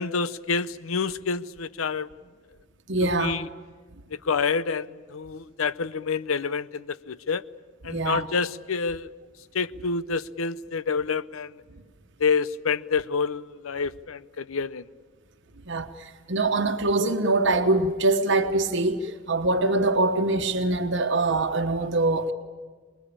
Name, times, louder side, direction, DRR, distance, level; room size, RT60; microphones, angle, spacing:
voice 1, 0.0-2.1 3.0-3.5 4.1-7.4 7.8-9.1 9.5-11.5 12.2-14.9, left 5 dB, 90° left, 0.7 m, -28 dB
voice 2, 2.9-3.3 7.9-8.3 15.7-22.3, right 2 dB, 60° right, 1.2 m, -24 dB
25.5 x 21.5 x 8.7 m
head